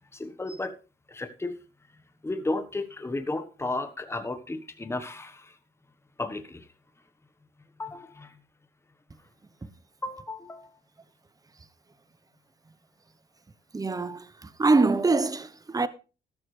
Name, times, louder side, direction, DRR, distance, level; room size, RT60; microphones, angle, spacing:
voice 1, 0.1-0.8 1.1-1.6 2.2-5.6 6.2-6.7 7.8-8.4 10.0-10.7, left 2 dB, 15° left, 1.3 m, -33 dB
voice 2, 13.7-15.9, right 3 dB, 20° right, 1.0 m, -24 dB
13.5 x 12.0 x 3.3 m
cardioid pair, 90°, 20 cm